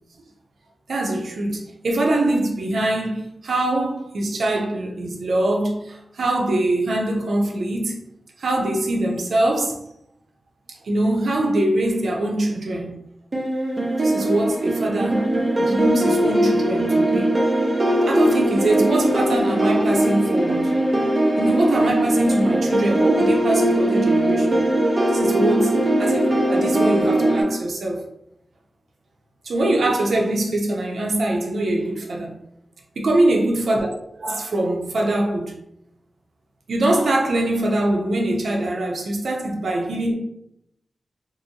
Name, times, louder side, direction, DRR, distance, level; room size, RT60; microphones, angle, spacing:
voice 1, 0.9-8.1 8.4-9.8 10.8-13.0 14.0-15.3 15.6-17.3 18.1-20.8 21.4-24.6 25.1-25.7 26.0-28.0 29.4-32.4 33.0-35.6 36.7-40.2, right 1 dB, 85° right, 0.6 m, -23 dB
sound 1, 13.3-27.4, right 1 dB, 40° right, 0.8 m, -20 dB
2.6 x 2.6 x 2.8 m
wide cardioid pair, 75°, 0 cm